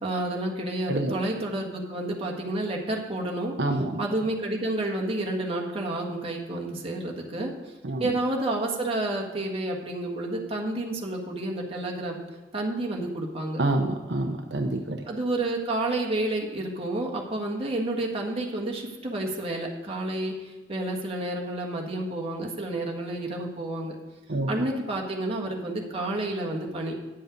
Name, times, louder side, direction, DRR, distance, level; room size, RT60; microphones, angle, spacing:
voice 1, 0.0-3.6 4.0-7.5 8.0-12.2 12.5-13.6 15.1-23.9 24.5-26.9, right 1 dB, 35° right, -1 dB, 1.7 m, -30 dB
voice 2, 3.6-4.0 7.8-8.1 13.6-15.0 24.3-24.7, right 2 dB, 70° right, 3 dB, 0.8 m, -27 dB
9.8 x 7.6 x 5.3 m, 1.2 s
head